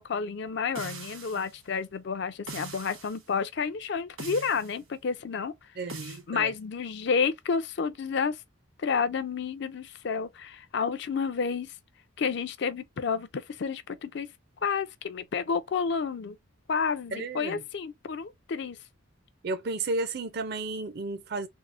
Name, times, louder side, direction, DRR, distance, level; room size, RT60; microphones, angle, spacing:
voice 1, 0.0-5.5 6.0-8.4 8.8-11.7 12.2-14.3 14.6-16.4 16.7-18.8, left 5 dB, 55° left, 0.4 m, -30 dB
sound 1, 0.8-1.5 2.5-3.2 4.2-4.8 5.9-6.2, right 3 dB, 80° right, 1.6 m, -41 dB
voice 2, 5.8-6.5 17.1-17.6 19.4-21.5, right 3 dB, 50° right, 0.5 m, -33 dB
3.6 x 2.0 x 2.5 m
head